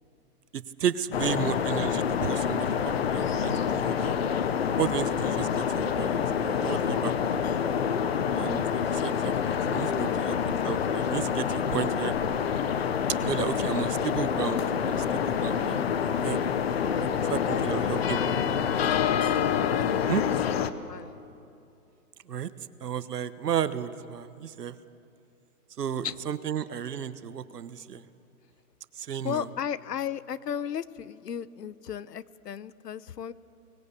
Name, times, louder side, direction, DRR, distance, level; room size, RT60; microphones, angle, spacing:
voice 1, 0.5-4.1 4.8-7.4 8.3-10.4 10.6-12.1 13.2-15.8 16.2-16.4 17.0-18.5 20.1-20.2 22.3-22.5 22.8-24.8 25.8-28.0 29.0-29.5, right 8 dB, 80° right, 13 dB, 1.3 m, -33 dB
sound 1, 1.1-20.7, left 7 dB, 40° left, 0.9 m, -27 dB
voice 2, 1.2-1.6 9.8-10.4 17.0-17.6 17.9-18.0 18.3-18.5 19.6-21.1 26.0-26.2 29.2-33.3, left 9 dB, 80° left, 17 dB, 1.0 m, -36 dB
23.0 x 20.0 x 8.3 m, 2.6 s
hypercardioid pair, 165°, 47 cm